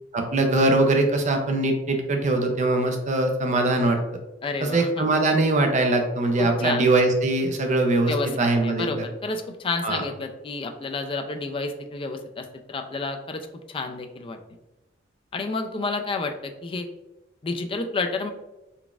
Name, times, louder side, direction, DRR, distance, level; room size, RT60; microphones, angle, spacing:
voice 1, 0.1-4.0 4.6-9.0 9.8-10.0, right 2 dB, 40° right, 4 dB, 0.5 m, -22 dB
voice 2, 4.4-5.1 6.4-6.9 8.1-14.4 15.3-16.9 17.4-18.3, left 3 dB, 25° left, 6 dB, 0.3 m, -30 dB
3.9 x 3.3 x 2.3 m, 1.0 s
head